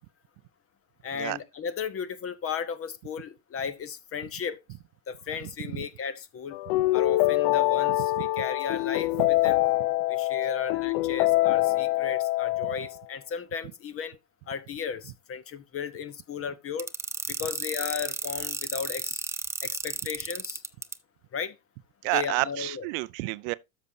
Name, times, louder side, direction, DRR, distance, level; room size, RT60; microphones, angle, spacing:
voice 1, 1.0-4.6 5.1-6.6 6.9-9.6 10.1-14.2 14.5-16.9 17.3-19.2 19.6-20.6 21.3-21.6 22.1-22.9, left 6 dB, 30° left, 1.0 m, -35 dB
sound 1, 6.5-13.0, left 18 dB, 45° left, 0.4 m, -25 dB
sound 2, 16.8-20.9, right 3 dB, 5° right, 0.6 m, -33 dB
voice 2, 22.0-23.5, right 24 dB, 50° right, 0.6 m, -29 dB
13.0 x 6.1 x 2.7 m
figure-of-eight pair, 75°, 46 cm